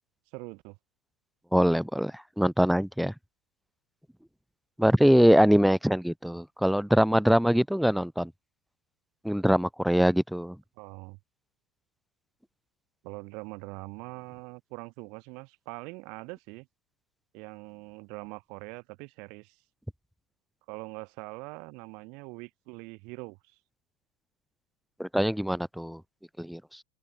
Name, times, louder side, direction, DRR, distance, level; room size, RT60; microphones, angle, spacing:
voice 1, 0.3-0.8 10.8-11.2 13.0-16.7 17.3-19.6 20.7-23.4, right 30 dB, 60° right, 4.1 m, -43 dB
voice 2, 1.5-3.1 4.8-8.3 9.2-10.6 25.0-26.0 26.4-26.6, equal, ahead, 1.3 m, -23 dB
open air
hypercardioid pair, 105°, 0 cm